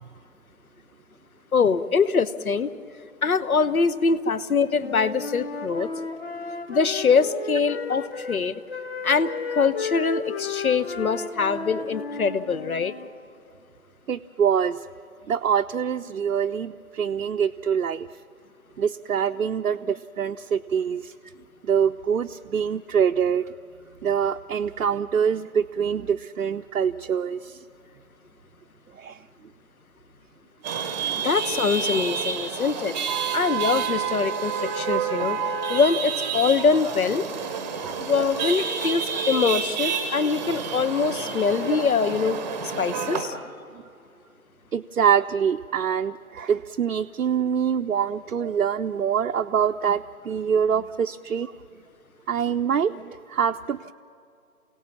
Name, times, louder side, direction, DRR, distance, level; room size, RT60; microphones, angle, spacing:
voice 1, 1.5-2.7 3.2-5.9 6.7-8.6 9.0-12.9 31.2-32.9 33.3-35.4 35.7-37.3 38.0-42.4 42.8-43.4, left 5 dB, 75° left, 15 dB, 1.0 m, -23 dB
Wind instrument woodwind instrument, 4.7-8.4 8.7-13.1, left 4 dB, 40° left, 1.8 m, -34 dB
voice 2, 14.1-14.9 15.3-18.1 18.8-21.1 21.6-23.5 24.0-27.6 28.9-29.2 31.0-31.3 37.8-37.9 43.7-43.8 44.7-51.5 52.3-53.9, right 7 dB, 75° right, 5 dB, 0.7 m, -25 dB
Chatter / Vehicle horn car horn honking / Traffic noise roadway noise, 30.6-43.2, right 6 dB, 10° right, 0.9 m, -29 dB
29.0 x 17.5 x 7.3 m, 2.5 s
figure-of-eight pair, 145°, 44 cm